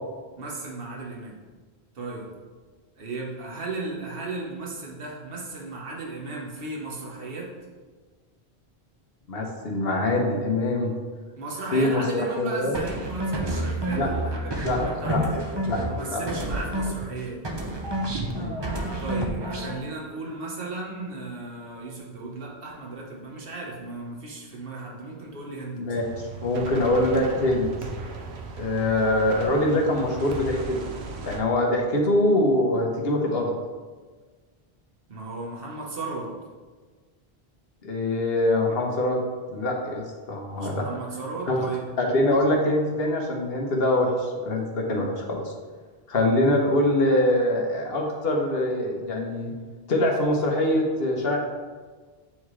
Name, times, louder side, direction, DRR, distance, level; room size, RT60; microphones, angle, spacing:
voice 1, 0.4-1.4 1.9-2.3 3.0-7.5 11.4-15.3 15.9-17.4 19.0-26.0 35.1-36.3 40.5-41.8, right 3 dB, 60° right, -2 dB, 1.3 m, -35 dB
voice 2, 9.3-10.9 11.7-12.8 13.9-14.1 14.6-14.8 15.1-15.2 15.6-15.8 16.1-16.2 18.3-18.5 25.8-26.0 26.4-27.7 28.6-30.8 31.3-33.5 37.8-39.2 39.5-40.8 41.5-41.7 42.0-45.5 46.1-49.5 49.9-51.4, left 1 dB, 65° left, 0 dB, 1.2 m, -24 dB
sound 1, 12.7-17.2 17.4-19.8, right 1 dB, 30° right, 0.6 m, -29 dB
sound 2, 25.9-31.4, right 3 dB, 85° right, 1.0 m, -36 dB
8.6 x 3.6 x 3.2 m, 1.4 s
omnidirectional pair, 1.1 m